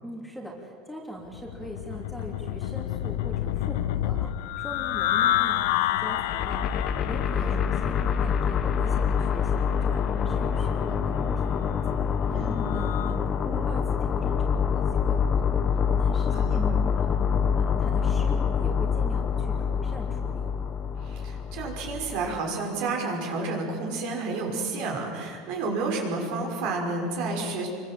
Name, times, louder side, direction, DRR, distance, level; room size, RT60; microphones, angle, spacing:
voice 1, 0.0-17.2 17.5-20.4, equal, ahead, -1 dB, 3.1 m, -41 dB
sound 1, 1.3-13.2, left 12 dB, 80° left, 1.0 m, -30 dB
sound 2, 6.2-22.4, left 7 dB, 30° left, 1.3 m, -26 dB
voice 2, 16.3-16.8 21.0-27.7, right 3 dB, 60° right, 1 dB, 5.9 m, -30 dB
28.0 x 23.5 x 7.7 m, 2.4 s
cardioid pair, 155°, 0 cm